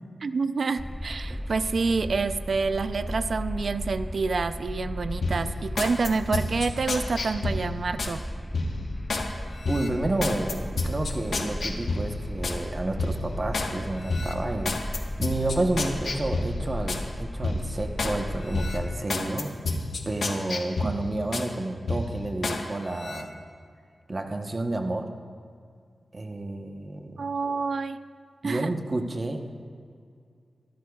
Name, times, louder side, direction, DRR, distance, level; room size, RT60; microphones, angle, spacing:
voice 1, 0.2-8.2 20.8-21.0 27.2-28.0 28.4-28.7, right 4 dB, 60° right, 11 dB, 0.5 m, -28 dB
sound 1, 0.8-19.1, equal, ahead, 0.3 m, -35 dB
sound 2, 5.2-8.2 8.5-9.3 9.6-12.6 13.0-13.7 14.1-17.0 17.4-18.2 18.5-21.5 21.9-22.6 23.0-23.2, left 3 dB, 75° left, 1.2 m, -31 dB
voice 2, 9.7-19.5 20.1-23.3 24.1-25.1 26.1-27.3 28.4-29.5, right 2 dB, 30° right, 3 dB, 1.0 m, -30 dB
25.0 x 13.0 x 2.4 m, 2.2 s
wide cardioid pair, 120°, 0 cm